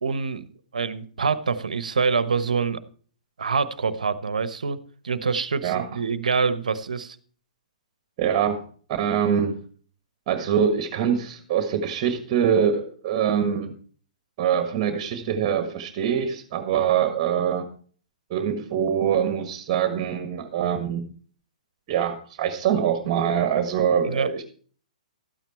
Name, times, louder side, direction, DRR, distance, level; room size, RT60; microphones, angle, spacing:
voice 1, 0.0-0.5 0.7-2.8 3.4-4.8 5.0-7.2 24.0-24.3, right 5 dB, 75° right, 15 dB, 1.1 m, -25 dB
voice 2, 8.2-8.6 8.9-9.6 10.3-13.7 14.4-17.7 18.3-21.0 21.9-24.4, right 8 dB, 40° right, 8 dB, 1.7 m, -24 dB
13.5 x 9.1 x 4.4 m, 0.44 s
figure-of-eight pair, 120°, 4 cm